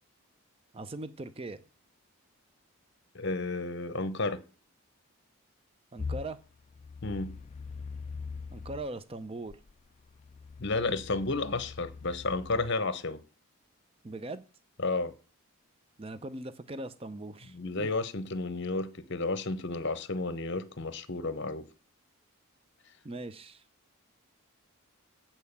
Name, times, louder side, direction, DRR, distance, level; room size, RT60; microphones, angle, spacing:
voice 1, 0.7-1.6 5.9-6.4 8.5-9.6 14.0-14.5 16.0-17.9 23.0-23.6, right 2 dB, 25° right, 0.5 m, -40 dB
voice 2, 3.1-4.4 7.0-7.4 10.6-13.2 14.8-15.1 17.5-21.7, left 3 dB, 50° left, 0.8 m, -32 dB
sound 1, 6.0-8.9 9.5-12.7, left 5 dB, 30° left, 0.3 m, -42 dB
8.4 x 4.4 x 7.0 m
head